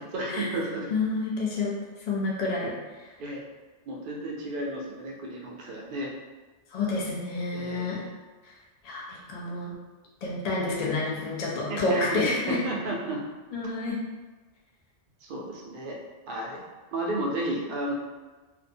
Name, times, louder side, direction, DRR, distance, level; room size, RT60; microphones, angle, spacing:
voice 1, 0.0-0.9 3.2-3.4 3.9-6.1 7.5-7.9 11.7-12.2 12.5-13.3 15.2-16.0 16.3-16.6 16.9-17.9, right 1 dB, 55° right, -2 dB, 0.6 m, -32 dB
voice 2, 0.9-1.7 2.1-3.1 6.7-8.0 8.8-9.7 10.2-12.6 13.5-14.0, left 3 dB, 50° left, -4 dB, 0.5 m, -29 dB
2.6 x 2.2 x 2.6 m, 1.2 s
omnidirectional pair, 1.2 m